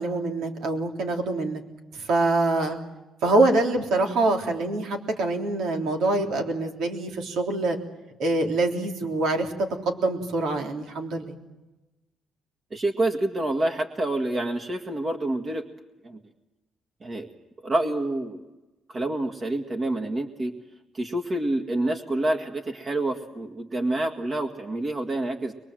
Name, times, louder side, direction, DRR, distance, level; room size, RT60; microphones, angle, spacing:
voice 1, 0.0-1.6 1.9-2.8 3.2-7.8 8.2-11.4, right 2 dB, 80° right, 2 dB, 3.5 m, -25 dB
voice 2, 12.7-15.6 16.0-16.2 17.0-17.3 17.6-18.4 18.9-20.5 20.9-25.5, right 1 dB, 35° right, 4 dB, 1.9 m, -27 dB
23.5 x 23.0 x 7.6 m, 1.1 s
cardioid pair, 90°, 0 cm